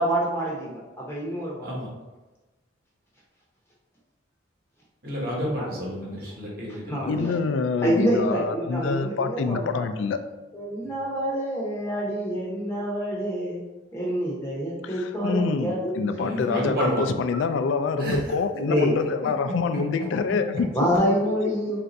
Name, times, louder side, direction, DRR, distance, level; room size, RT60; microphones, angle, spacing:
voice 1, 0.0-1.7 5.5-5.7 6.9-7.3 7.8-9.8 10.5-13.6 13.9-17.1 18.7-18.9 20.7-21.8, equal, 15° left, -5 dB, 0.6 m, -27 dB
voice 2, 5.0-7.1 16.2-17.0 18.0-18.2, equal, 50° right, -4 dB, 1.1 m, -30 dB
voice 3, 6.9-10.2 14.8-20.7, left 4 dB, 80° left, 9 dB, 0.3 m, -26 dB
3.3 x 2.6 x 4.0 m, 1.1 s
head